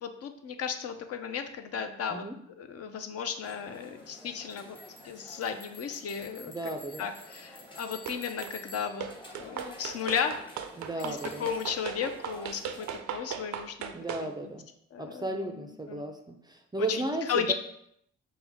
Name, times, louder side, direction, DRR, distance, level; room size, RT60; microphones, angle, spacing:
voice 1, 0.0-2.2 2.6-4.8 5.0-6.5 7.0-9.1 9.4-10.4 11.0-13.9 14.2-14.3 14.9-16.0 16.8-17.0 17.3-17.5, left 7 dB, 55° left, 6 dB, 0.5 m, -34 dB
sound 1, 3.4-13.0, left 1 dB, 15° left, 0.8 m, -49 dB
voice 2, 6.5-7.1 10.8-11.5 13.9-14.6 15.0-17.5, right 2 dB, 15° right, 4 dB, 0.4 m, -34 dB
sound 2, 8.1-8.6 9.0-14.3, right 8 dB, 70° right, 0.5 m, -38 dB
5.7 x 2.1 x 3.5 m, 0.73 s
cardioid pair, 90°, 30 cm